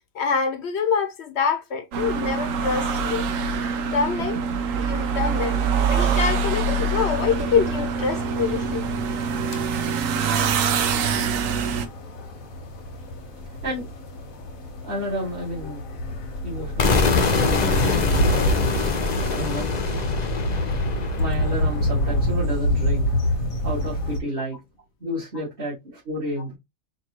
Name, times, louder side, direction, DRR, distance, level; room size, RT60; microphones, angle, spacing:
voice 1, 0.1-3.3 3.9-4.4 4.8-8.8 9.5-9.6, left 6 dB, 60° left, 1.0 m, -25 dB
sound 1, 1.9-11.9, right 5 dB, 75° right, 1.1 m, -24 dB
sound 2, 7.1-24.2, equal, 85° left, 1.5 m, -28 dB
voice 2, 13.4-13.9 14.8-15.8 16.1-16.2 16.4-18.8 19.2-19.6 21.2-24.6 25.0-26.5, equal, 40° right, 2.2 m, -31 dB
sound 3, 16.8-22.7, left 4 dB, 40° left, 0.8 m, -24 dB
5.2 x 2.7 x 2.9 m
omnidirectional pair, 1.4 m